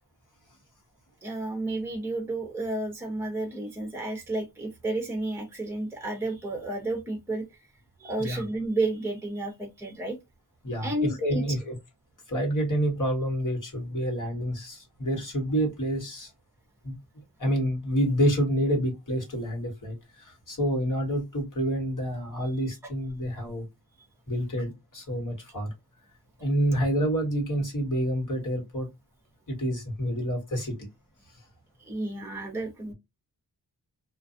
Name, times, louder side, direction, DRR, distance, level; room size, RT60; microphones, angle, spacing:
voice 1, 1.2-7.5 8.0-10.2 10.8-11.4 31.8-32.9, right 2 dB, 5° right, 0.7 m, -31 dB
voice 2, 10.6-11.7 12.3-16.3 16.8-17.0 17.4-23.6 24.3-25.7 26.4-28.9 29.5-30.7, equal, 50° left, 1.5 m, -28 dB
2.5 x 2.3 x 2.4 m
wide cardioid pair, 105°, 40 cm